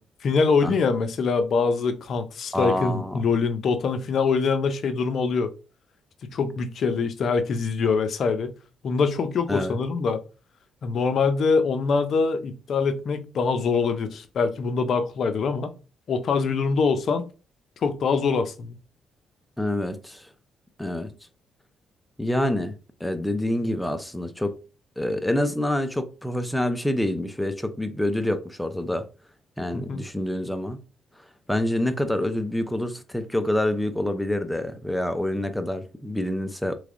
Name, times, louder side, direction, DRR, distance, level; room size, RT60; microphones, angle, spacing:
voice 1, 0.2-5.5 6.2-8.5 8.8-10.2 10.8-15.7 16.1-17.2 17.8-18.8 29.7-30.0, left 5 dB, 60° left, 0.5 m, -24 dB
voice 2, 2.5-3.2 9.5-9.8 19.6-20.3 20.8-21.1 22.2-22.7 23.0-24.6 25.0-29.0 29.6-30.8 31.5-36.8, left 1 dB, 5° left, 0.5 m, -27 dB
3.3 x 3.2 x 2.5 m
cardioid pair, 90°, 0 cm